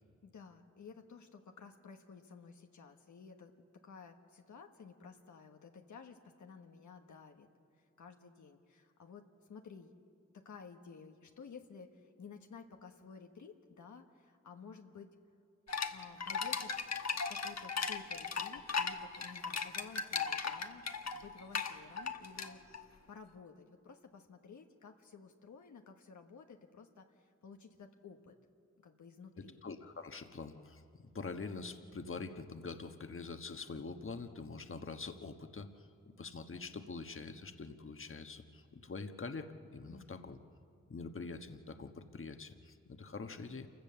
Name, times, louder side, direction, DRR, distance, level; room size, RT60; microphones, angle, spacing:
voice 1, 0.2-7.5 7.8-9.9 10.3-15.1 15.9-16.8 17.3-20.9 21.1-22.6 23.1-28.3 28.8-29.6 39.9-40.4, left 5 dB, 85° left, 4 dB, 1.3 m, -54 dB
sound 1, 15.7-22.8, left 5 dB, 65° left, 1.2 m, -37 dB
voice 2, 29.6-35.9 36.2-40.4 40.9-43.7, left 4 dB, 45° left, 7 dB, 1.3 m, -45 dB
27.5 x 16.0 x 6.9 m, 2.3 s
cardioid pair, 45°, 29 cm